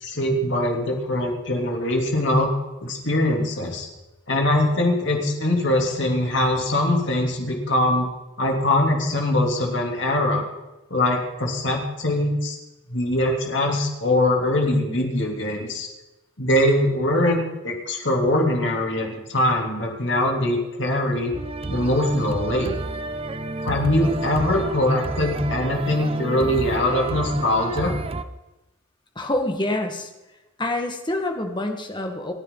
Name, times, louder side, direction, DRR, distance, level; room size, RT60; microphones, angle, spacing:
voice 1, 0.0-2.5 2.8-3.9 4.3-8.1 8.4-10.4 10.9-12.6 12.9-15.9 16.4-21.3 21.7-22.7 23.6-27.9, left 1 dB, 60° left, 0 dB, 3.3 m, -22 dB
sound 1, 21.3-28.2, right 2 dB, 30° right, 0.7 m, -30 dB
voice 2, 29.2-30.1 30.6-32.3, left 1 dB, 20° left, 4 dB, 1.7 m, -26 dB
28.5 x 10.0 x 4.0 m, 1.0 s
head